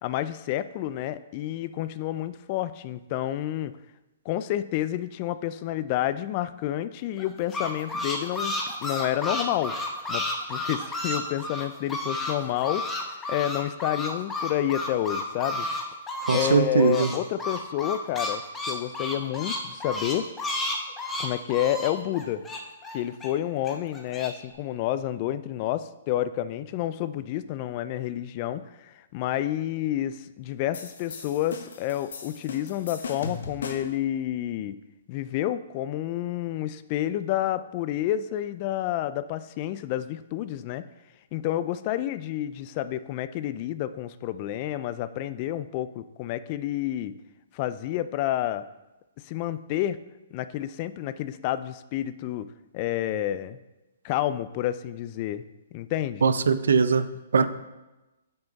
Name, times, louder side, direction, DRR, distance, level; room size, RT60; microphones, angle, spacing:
voice 1, 0.0-3.7 4.3-9.7 10.1-10.2 10.5-15.7 16.3-18.4 18.7-20.3 21.2-22.4 22.9-34.8 35.1-40.8 41.3-47.2 47.5-48.7 49.2-50.0 50.3-53.6 54.0-55.4 55.7-56.3, left 12 dB, 30° left, 13 dB, 0.3 m, -29 dB
sound 1, 7.2-12.3 12.6-16.5 16.8-23.3 23.6-24.3, left 2 dB, 10° left, 0.8 m, -31 dB
voice 2, 16.3-17.1 56.2-57.1 57.3-57.4, right 5 dB, 85° right, 12 dB, 0.6 m, -21 dB
sound 2, 30.7-34.0, left 4 dB, 75° left, 1.0 m, -38 dB
9.1 x 5.7 x 4.0 m, 1.0 s
hypercardioid pair, 170°, 0 cm